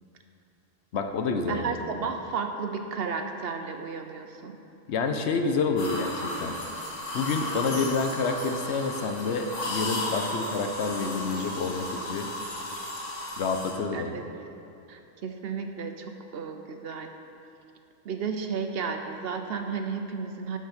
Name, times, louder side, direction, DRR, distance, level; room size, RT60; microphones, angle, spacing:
voice 1, 0.9-1.7 4.9-6.6 7.1-12.3 13.4-14.2, left 4 dB, 70° left, 6 dB, 0.9 m, -28 dB
voice 2, 1.5-4.6 13.9-14.2 14.9-16.1 16.3-17.1 18.0-20.6, right 5 dB, 60° right, 5 dB, 0.8 m, -33 dB
sound 1, 5.8-13.7, left 1 dB, 85° left, 1.7 m, -34 dB
12.0 x 5.4 x 5.1 m, 2.7 s
omnidirectional pair, 1.2 m